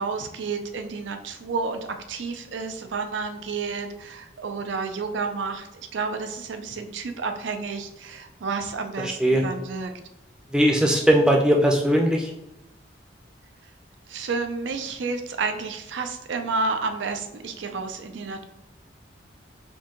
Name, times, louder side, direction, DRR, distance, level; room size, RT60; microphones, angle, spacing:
voice 1, 0.0-9.9 14.1-18.4, right 4 dB, 80° right, 7 dB, 0.4 m, -30 dB
voice 2, 9.0-9.4 10.5-12.3, equal, 5° right, 0 dB, 0.5 m, -19 dB
4.4 x 2.7 x 2.9 m, 0.88 s
head